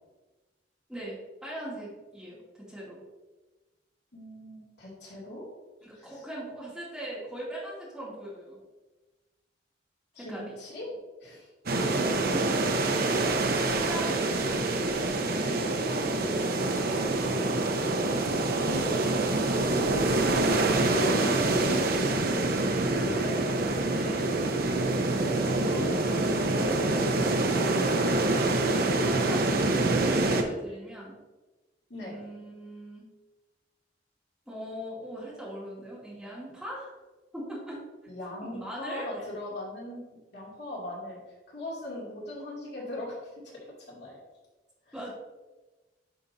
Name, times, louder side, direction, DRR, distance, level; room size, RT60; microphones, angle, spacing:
voice 1, 0.9-3.0 5.8-8.6 10.2-10.6 12.3-12.7 13.6-14.7 16.8-17.2 23.9-24.3 29.0-31.2 32.0-33.1 34.5-36.9 37.3-37.8 38.4-39.1 44.9-45.1, right 1 dB, 5° right, -8 dB, 2.5 m, -40 dB
voice 2, 4.1-5.5 5.9-6.2 10.1-11.5 14.1-14.3 15.4-16.3 20.8-22.1 23.1-23.7 25.5-28.4 31.9-32.2 38.1-40.0 40.3-41.2 41.5-43.2 43.4-44.2 44.9-45.0, left 1 dB, 65° left, -5 dB, 2.5 m, -40 dB
sound 1, 11.7-30.4, right 2 dB, 55° right, 0.8 m, -26 dB
9.3 x 5.9 x 2.7 m, 1.2 s
head